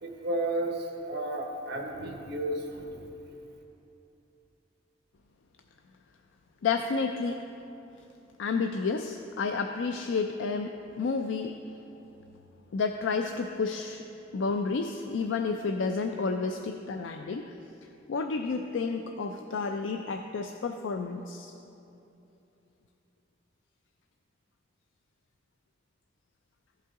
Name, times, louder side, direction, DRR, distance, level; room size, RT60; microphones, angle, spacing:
voice 1, 0.0-3.0, right 1 dB, 60° right, 2 dB, 1.1 m, -33 dB
voice 2, 6.6-7.4 8.4-10.7 11.0-11.5 12.7-14.0 14.3-17.5 18.1-21.5, left 4 dB, 90° left, 5 dB, 0.4 m, -30 dB
15.0 x 5.5 x 3.7 m, 2.9 s
head